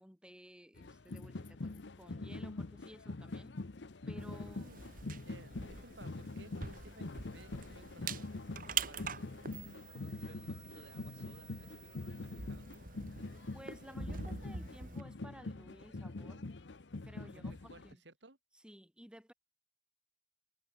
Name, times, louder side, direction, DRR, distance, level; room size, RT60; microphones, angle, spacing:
voice 1, 0.0-3.6 4.1-4.7 13.5-16.4 17.0-18.0 18.5-19.3, equal, 5° right, 5.4 m, -55 dB
sound 1, 0.8-17.9, left 2 dB, 85° left, 0.9 m, -45 dB
sound 2, 4.2-15.0, right 6 dB, 50° right, 2.3 m, -45 dB
voice 2, 4.2-4.9 5.2-8.3 8.8-9.2 9.9-11.8 12.2-12.7 17.3-18.4, right 2 dB, 80° right, 5.1 m, -58 dB
head